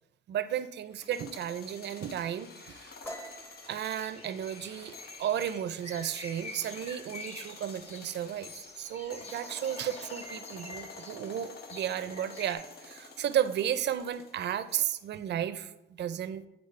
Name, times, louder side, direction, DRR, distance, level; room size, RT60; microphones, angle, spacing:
voice 1, 0.3-2.9 3.7-4.9 5.2-16.4, right 10 dB, 60° right, 12 dB, 0.5 m, -33 dB
sound 1, 0.9-15.1, left 4 dB, 55° left, 0.8 m, -49 dB
sound 2, 3.0-6.5 6.8-7.1 7.5-8.0 8.3-9.1, right 1 dB, 10° left, 0.8 m, -48 dB
sound 3, 3.7-12.6, left 2 dB, 30° left, 1.1 m, -48 dB
8.2 x 4.2 x 3.2 m, 0.90 s
cardioid pair, 90°, 20 cm